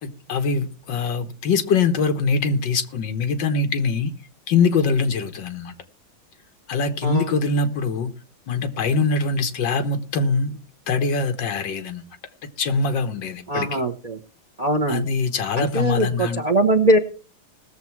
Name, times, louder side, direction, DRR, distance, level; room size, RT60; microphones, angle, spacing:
voice 1, 0.0-4.1 4.5-5.7 6.7-8.1 8.5-10.6 10.9-12.0 12.6-13.8 14.9-16.4, left 4 dB, 70° left, 1.9 m, -23 dB
voice 2, 13.5-14.2 14.6-15.0 15.6-17.0, right 1 dB, 35° right, 0.6 m, -21 dB
19.0 x 7.2 x 4.6 m
omnidirectional pair, 2.1 m